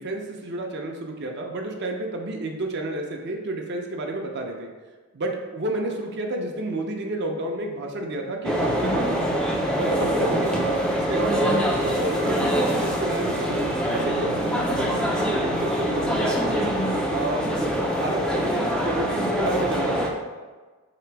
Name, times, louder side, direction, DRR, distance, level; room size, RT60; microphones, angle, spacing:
voice 1, 0.0-4.7 5.1-9.3 9.7-13.6 13.9-16.7 17.1-17.5 17.9-20.3, right 1 dB, 50° right, 2 dB, 0.5 m, -30 dB
sound 1, 8.4-20.1, equal, 5° left, 0.3 m, -24 dB
3.3 x 2.9 x 4.5 m, 1.4 s
head